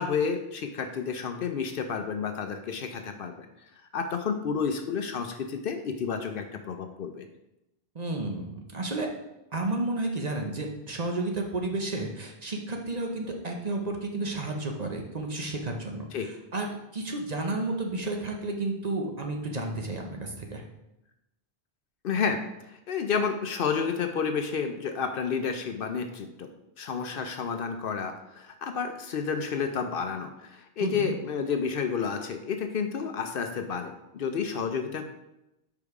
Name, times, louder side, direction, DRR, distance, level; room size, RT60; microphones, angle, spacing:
voice 1, 0.0-3.5 3.9-7.2 16.1-16.3 22.0-26.5 26.8-35.1, left 6 dB, 65° left, 6 dB, 0.7 m, -30 dB
voice 2, 7.9-9.1 9.5-16.7 16.9-20.6 30.8-31.2, right 2 dB, 40° right, 2 dB, 0.9 m, -32 dB
5.3 x 4.7 x 4.7 m, 0.90 s
omnidirectional pair, 1.1 m